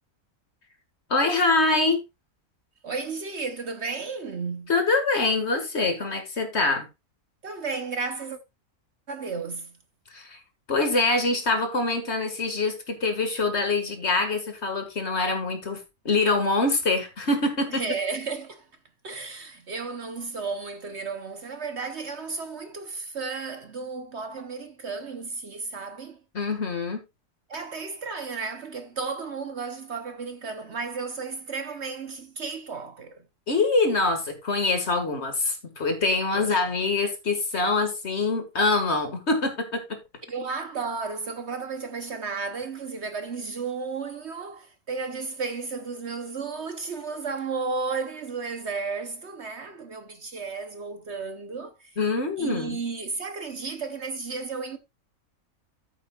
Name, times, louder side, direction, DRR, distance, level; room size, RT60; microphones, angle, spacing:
voice 1, 1.1-2.0 4.7-6.9 10.1-10.4 10.7-15.8 16.1-17.8 26.3-27.0 33.5-40.0 52.0-52.8, left 3 dB, 45° left, 2.1 m, -24 dB
voice 2, 2.8-4.7 7.4-8.4 9.1-9.7 17.7-18.7 19.0-26.2 27.5-33.2 36.3-36.5 40.3-51.9 52.4-54.8, right 4 dB, 50° right, 1.1 m, -33 dB
13.5 x 7.1 x 2.4 m
omnidirectional pair, 1.6 m